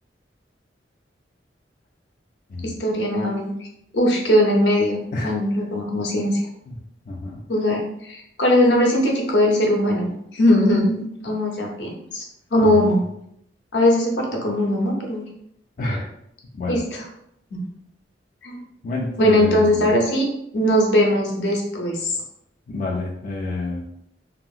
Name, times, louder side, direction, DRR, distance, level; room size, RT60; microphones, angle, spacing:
voice 1, 2.6-3.5 3.9-6.5 7.5-12.2 12.5-13.0 13.7-15.2 16.7-17.0 17.5-17.6 18.4-18.6 19.2-20.2 20.5-22.2, left 1 dB, 75° left, -1 dB, 0.8 m, -20 dB
voice 2, 7.1-7.4 12.6-12.9 15.8-16.0 16.5-16.8 18.8-20.0 22.7-24.1, left 2 dB, 50° left, -3 dB, 0.4 m, -28 dB
2.8 x 2.8 x 2.4 m, 0.75 s
head